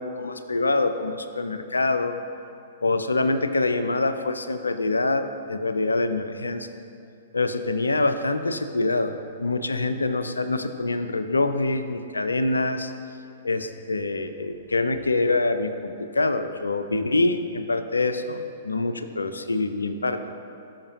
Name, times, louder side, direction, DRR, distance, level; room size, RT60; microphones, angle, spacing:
voice 1, 0.0-2.2 2.8-6.8 7.3-12.9 13.4-20.2, left 2 dB, 80° left, 9 dB, 0.5 m, -25 dB
13.5 x 5.8 x 2.8 m, 2.6 s
figure-of-eight pair, 110°, 0 cm